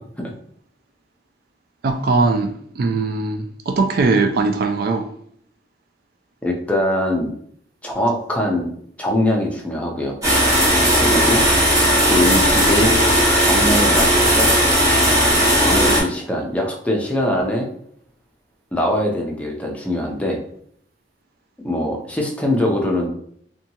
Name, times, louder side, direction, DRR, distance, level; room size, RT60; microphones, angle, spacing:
voice 1, 1.8-5.1, right 3 dB, 60° right, 0.3 m, -20 dB
voice 2, 6.4-7.3 7.8-8.7 9.0-10.2 11.0-11.5 12.0-13.0 13.4-14.5 15.6-17.7 18.7-20.4 21.6-23.1, left 1 dB, 10° left, 0.5 m, -22 dB
sound 1, 10.2-16.0, equal, 20° right, 1.0 m, -16 dB
2.7 x 2.3 x 2.7 m
head